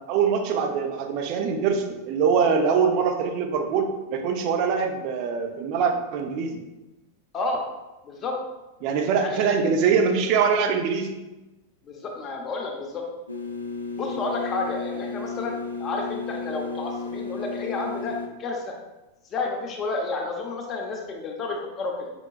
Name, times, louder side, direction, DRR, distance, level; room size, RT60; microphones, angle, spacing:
voice 1, 0.0-6.6 8.8-11.1, right 6 dB, 40° right, 3 dB, 0.5 m, -23 dB
voice 2, 8.0-8.3 9.2-9.6 11.9-13.0 14.0-18.7 19.3-22.1, left 3 dB, 30° left, 0 dB, 0.5 m, -31 dB
sound 1, 13.3-18.3, left 4 dB, 85° left, 0.3 m, -33 dB
5.6 x 2.2 x 2.4 m, 1.0 s
figure-of-eight pair, 90°, 0 cm